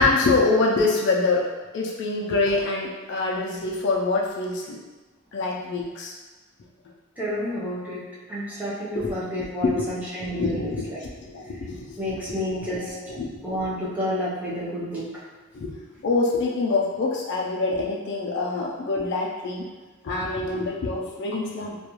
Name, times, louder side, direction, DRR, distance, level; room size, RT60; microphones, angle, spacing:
voice 1, 0.0-1.5 1.7-4.8 5.3-6.2 8.9-9.1 9.6-9.8 10.3-13.3 15.5-15.7 16.0-19.7 20.0-21.8, left 3 dB, 55° left, -2 dB, 0.3 m, -25 dB
voice 2, 7.2-10.7 12.0-12.9 13.4-15.0, equal, 10° right, -8 dB, 0.5 m, -30 dB
2.3 x 2.2 x 2.9 m, 1.3 s
head